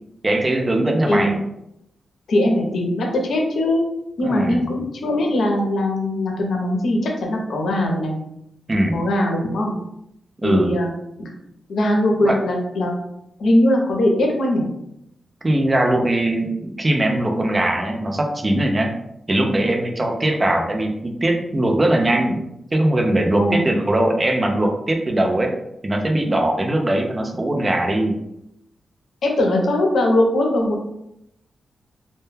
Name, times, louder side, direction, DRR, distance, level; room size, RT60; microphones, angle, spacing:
voice 1, 0.2-1.4 4.2-4.7 8.7-9.0 10.4-10.8 12.2-12.4 15.4-18.9 19.3-22.4 22.7-25.5 25.8-28.2, right 1 dB, 25° right, 2 dB, 0.4 m, -20 dB
voice 2, 1.1-1.4 2.3-3.8 4.2-8.1 8.9-9.8 10.4-10.9 11.2-11.3 11.7-12.9 13.4-14.6 23.4-23.6 29.2-30.8, left 1 dB, 75° left, 0 dB, 0.6 m, -20 dB
2.1 x 2.1 x 3.2 m, 0.80 s
wide cardioid pair, 120°, 0 cm